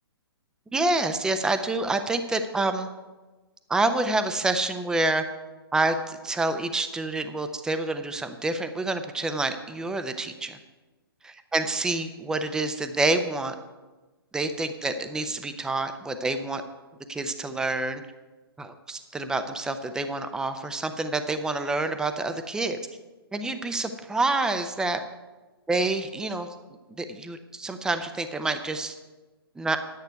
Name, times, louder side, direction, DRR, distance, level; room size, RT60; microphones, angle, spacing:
voice 1, 0.7-2.9 3.7-5.2 5.7-10.6 11.2-13.5 14.3-16.6 17.1-18.0 18.6-22.8 23.3-25.0 25.7-26.5 27.0-28.9 29.6-29.8, right 2 dB, 5° right, 9 dB, 0.6 m, -27 dB
10.5 x 9.4 x 4.6 m, 1.2 s
figure-of-eight pair, 125°, 13 cm